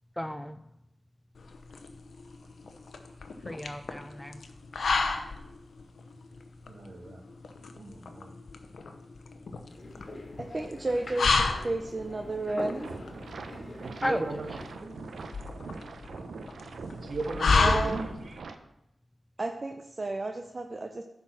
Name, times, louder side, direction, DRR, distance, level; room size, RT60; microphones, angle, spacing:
voice 1, 0.2-0.6 3.4-4.4 14.0-14.7, equal, 10° left, 0.5 m, -35 dB
sound 1, 1.4-18.4, left 4 dB, 75° left, 0.8 m, -31 dB
voice 2, 6.7-7.2 7.8-8.3 13.8-14.5 14.8-15.0 16.9-18.5, right 3 dB, 65° right, 1.2 m, -36 dB
sound 2, 9.7-14.8, left 1 dB, 50° left, 2.0 m, -44 dB
voice 3, 10.4-12.9 17.6-18.0 19.4-21.0, right 2 dB, 45° right, 0.7 m, -32 dB
sound 3, 12.8-18.5, right 4 dB, 80° right, 0.6 m, -43 dB
9.9 x 4.4 x 6.1 m
cardioid pair, 45°, 0 cm